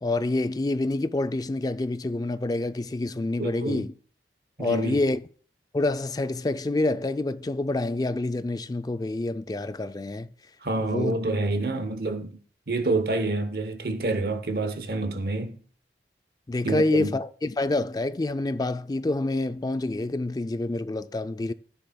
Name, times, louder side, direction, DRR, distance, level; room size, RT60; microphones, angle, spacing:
voice 1, 0.0-3.9 4.6-5.2 5.7-10.3 10.8-11.2 16.5-21.5, left 2 dB, 20° left, 0.4 m, -27 dB
voice 2, 3.4-3.9 4.6-5.0 10.6-12.4 12.7-15.6 16.6-17.1, right 2 dB, 60° right, 0.9 m, -28 dB
13.5 x 10.0 x 2.3 m
head